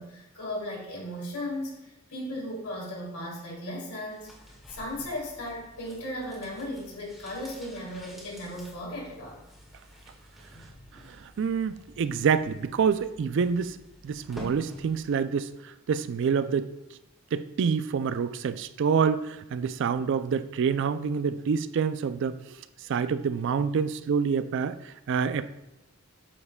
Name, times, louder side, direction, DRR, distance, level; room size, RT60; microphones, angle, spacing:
voice 1, 0.0-4.3 4.7-9.4 10.5-10.7, left 1 dB, 85° left, -3 dB, 2.7 m, -36 dB
sound 1, 4.1-15.3 15.5-15.6, equal, ahead, 1.5 m, -49 dB
voice 2, 11.1-13.8 14.0-16.7 17.3-22.6 22.9-25.5, right 6 dB, 55° right, 14 dB, 0.3 m, -27 dB
8.3 x 7.1 x 2.2 m, 0.94 s
head